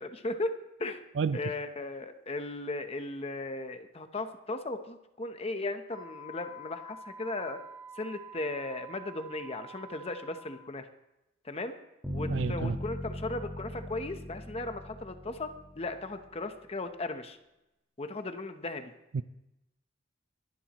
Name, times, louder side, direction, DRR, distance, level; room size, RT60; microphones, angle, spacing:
voice 1, 0.0-1.0 1.3-7.6 8.0-10.9 11.4-11.7 12.1-17.4 18.0-18.9, left 2 dB, 30° left, 8 dB, 0.8 m, -36 dB
Wind instrument woodwind instrument, 5.9-10.7, right 1 dB, 25° right, 4.2 m, -48 dB
Bass guitar, 12.0-16.1, equal, 5° right, 4.3 m, -39 dB
voice 2, 12.3-12.8 19.1-19.2, right 5 dB, 70° right, 13 dB, 0.4 m, -29 dB
22.5 x 11.5 x 3.0 m, 0.92 s
head